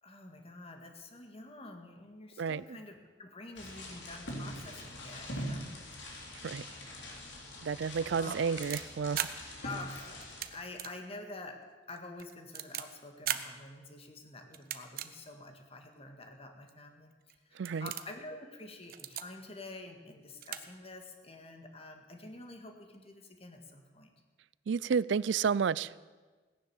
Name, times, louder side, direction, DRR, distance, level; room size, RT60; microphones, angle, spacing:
voice 1, 0.0-5.7 6.0-6.3 8.2-8.4 9.6-10.2 10.5-17.1 17.5-24.1, left 2 dB, 35° left, 4 dB, 1.9 m, -48 dB
sound 1, 3.6-10.5, equal, 85° left, 3.4 m, -43 dB
voice 2, 7.6-9.3 17.6-17.9 24.7-25.9, right 6 dB, 85° right, 21 dB, 0.4 m, -31 dB
sound 2, 8.2-9.3 10.2-10.5 10.8-10.9 11.3-11.4 12.0-12.8 13.3-13.4 14.5-15.1 15.7-15.8 16.7-16.8 17.2-17.4 17.7-18.1 18.8-19.2 20.1-20.2 20.4-20.6 20.9-21.0, right 10 dB, 55° right, 0.9 m, -37 dB
18.0 x 10.5 x 7.1 m, 1.3 s
head